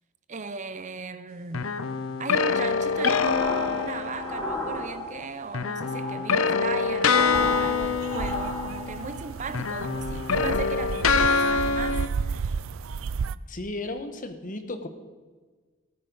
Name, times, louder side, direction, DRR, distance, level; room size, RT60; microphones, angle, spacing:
voice 1, 0.3-1.8 2.2-12.5, right 4 dB, 35° right, 0.6 m, -37 dB
sound 1, 1.5-4.6 5.5-9.2 9.5-12.1, left 5 dB, 80° left, 0.7 m, -25 dB
sound 2, 2.7-5.3 5.6-9.2, left 1 dB, 5° left, 5.3 m, -35 dB
sound 3, 7.3-13.4, right 5 dB, 75° right, 0.4 m, -33 dB
voice 2, 13.5-14.9, left 2 dB, 40° left, 1.3 m, -34 dB
18.0 x 9.8 x 5.5 m
head